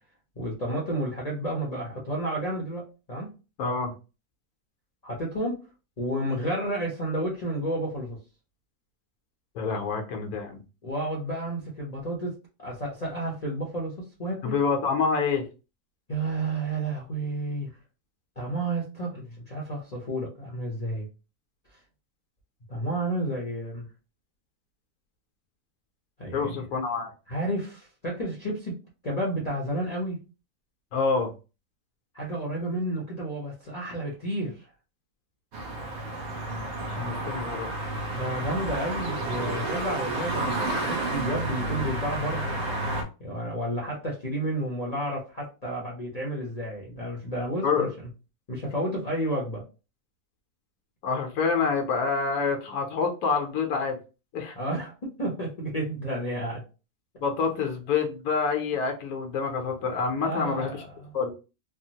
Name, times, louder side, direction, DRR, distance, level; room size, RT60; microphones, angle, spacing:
voice 1, 0.4-2.8 3.1-3.3 5.0-5.6 6.0-8.2 10.8-14.6 16.1-17.7 18.4-21.1 22.7-23.9 26.2-26.6 27.3-30.2 32.1-34.7 38.1-42.6 43.2-48.1 48.5-49.6 54.5-56.6 60.2-61.2, right 1 dB, 40° left, -4 dB, 0.6 m, -31 dB
voice 2, 3.6-3.9 9.5-10.6 14.4-15.4 26.3-27.1 30.9-31.3 36.3-37.7 47.6-47.9 51.0-54.0 54.3-54.6 57.2-60.8 61.1-61.3, left 5 dB, 75° left, 2 dB, 1.2 m, -27 dB
sound 1, 35.5-43.0, right 2 dB, 55° right, 0.9 m, -31 dB
3.4 x 2.0 x 2.8 m, 0.32 s
omnidirectional pair, 1.6 m